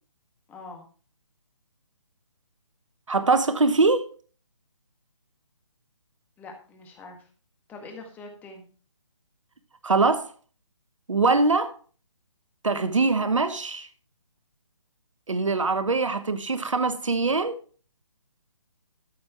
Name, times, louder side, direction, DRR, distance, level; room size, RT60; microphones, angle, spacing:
voice 1, 0.5-0.8 6.4-7.2 7.7-8.7, left 3 dB, 10° left, 1.7 m, -43 dB
voice 2, 3.1-4.1 9.8-10.3 11.1-11.8 12.6-13.9 15.3-17.6, right 3 dB, 85° right, 1.1 m, -23 dB
13.0 x 5.4 x 4.6 m
figure-of-eight pair, 150°, 16 cm